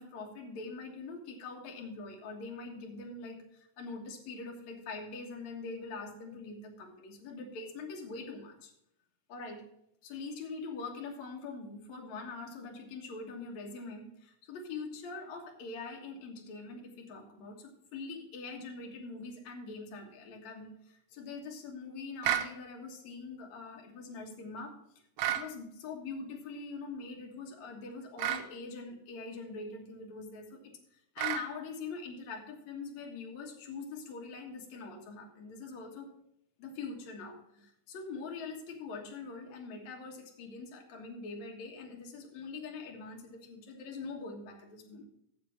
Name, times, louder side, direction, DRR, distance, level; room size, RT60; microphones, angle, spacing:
voice 1, 0.0-8.7 9.3-9.7 10.0-24.8 25.2-36.1 36.6-45.1, left 4 dB, 55° left, 1 dB, 2.1 m, -43 dB
sound 1, 22.2-22.5 25.2-25.5 28.2-28.5 31.2-31.5, right 11 dB, 80° right, 2.9 m, -31 dB
7.7 x 7.3 x 6.4 m, 0.76 s
omnidirectional pair, 5.1 m